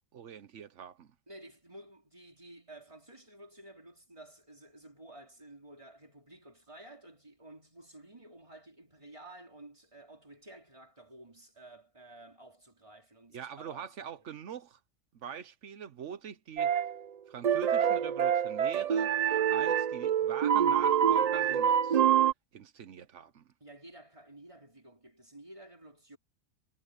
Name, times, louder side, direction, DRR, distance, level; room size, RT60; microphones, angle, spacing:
voice 1, 0.1-1.1 13.3-14.8 15.1-16.7 17.3-19.2 19.5-22.0 22.5-23.4, right 8 dB, 85° right, 1.2 m, -43 dB
voice 2, 1.3-14.3 23.6-26.2, right 1 dB, 25° right, 3.8 m, -52 dB
sound 1, 16.6-17.0 17.4-22.3, right 9 dB, 65° right, 0.4 m, -26 dB
omnidirectional pair, 1.2 m